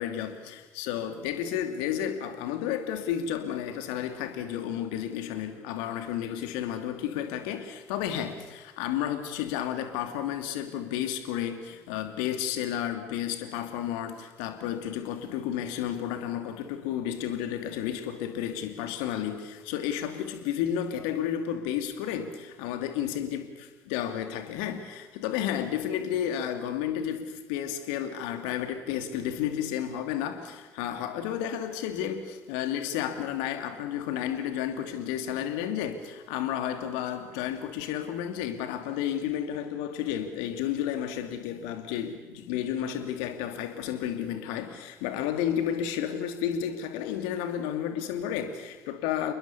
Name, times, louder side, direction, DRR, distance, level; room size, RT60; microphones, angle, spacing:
voice 1, 0.0-49.3, left 10 dB, 65° left, 2.7 m, -32 dB
29.0 x 21.5 x 7.1 m
figure-of-eight pair, 55°, 9 cm